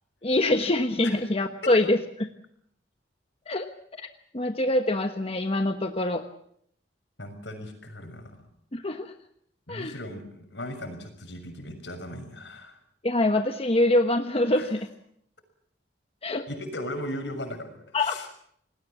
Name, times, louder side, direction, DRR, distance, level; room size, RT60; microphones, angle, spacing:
voice 1, 0.2-2.3 3.5-3.7 4.0-4.1 4.3-6.2 8.7-9.1 9.7-9.9 13.0-14.9 16.2-16.5 17.9-18.2, left 1 dB, 35° left, 6 dB, 1.2 m, -24 dB
voice 2, 7.2-8.5 9.7-12.8 14.5-14.7 16.5-18.3, left 1 dB, 75° left, 7 dB, 6.4 m, -37 dB
28.5 x 20.0 x 7.2 m, 0.70 s
head